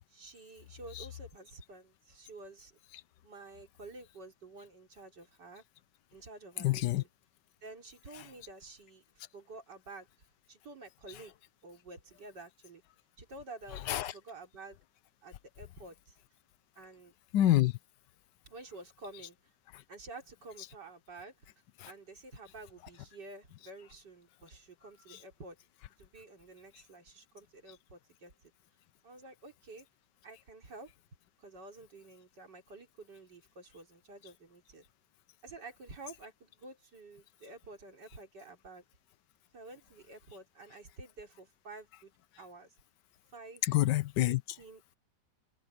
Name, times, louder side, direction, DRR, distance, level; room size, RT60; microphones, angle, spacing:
voice 1, 0.1-2.7 3.2-5.6 6.1-7.1 7.6-9.0 9.3-10.1 10.5-12.8 13.2-14.8 15.2-16.2 16.8-17.1 18.4-19.4 19.9-21.3 21.9-25.6 26.0-28.5 29.0-29.9 30.2-30.9 31.4-34.9 35.4-38.8 39.5-42.7 43.3-43.6 44.3-45.0, right 2 dB, 80° right, 4.4 m, -50 dB
voice 2, 6.6-7.0 8.1-8.2 13.7-14.1 17.3-17.7 43.6-44.4, left 14 dB, 85° left, 1.4 m, -27 dB
omnidirectional pair, 1.8 m